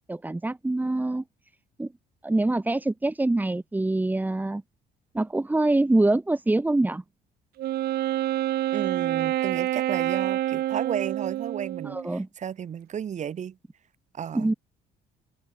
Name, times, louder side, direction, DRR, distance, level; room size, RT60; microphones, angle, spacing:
voice 1, 0.1-1.2 1.8-1.9 2.2-4.6 5.1-7.0 11.8-12.3 14.3-14.5, right 2 dB, 10° right, 1.5 m, -24 dB
Wind instrument woodwind instrument, 7.6-12.1, right 14 dB, 70° right, 1.5 m, -27 dB
voice 2, 8.7-13.6 14.1-14.6, right 8 dB, 45° right, 2.5 m, -33 dB
open air
cardioid pair, 110°, 17 cm